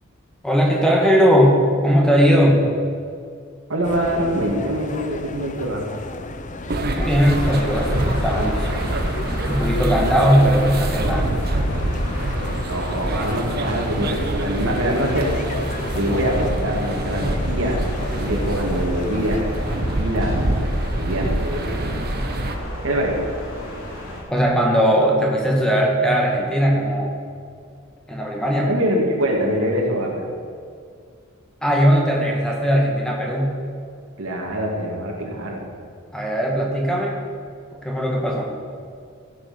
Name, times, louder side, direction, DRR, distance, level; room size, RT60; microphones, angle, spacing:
voice 1, 0.4-2.6 7.0-8.7 9.5-11.3 24.3-27.1 28.1-28.7 31.6-33.5 36.1-37.2 37.8-38.5, equal, 5° left, -2 dB, 2.1 m, -18 dB
voice 2, 3.7-5.8 12.7-15.3 15.9-21.9 22.8-23.1 28.6-30.3 34.2-35.6, equal, 85° right, -1 dB, 2.7 m, -24 dB
sound 1, 3.8-19.4, left 2 dB, 35° left, 0.8 m, -34 dB
sound 2, 6.7-22.6, right 1 dB, 50° right, 1.0 m, -26 dB
sound 3, 7.2-24.2, equal, 85° left, 3.9 m, -32 dB
15.0 x 8.0 x 6.2 m, 2.2 s
head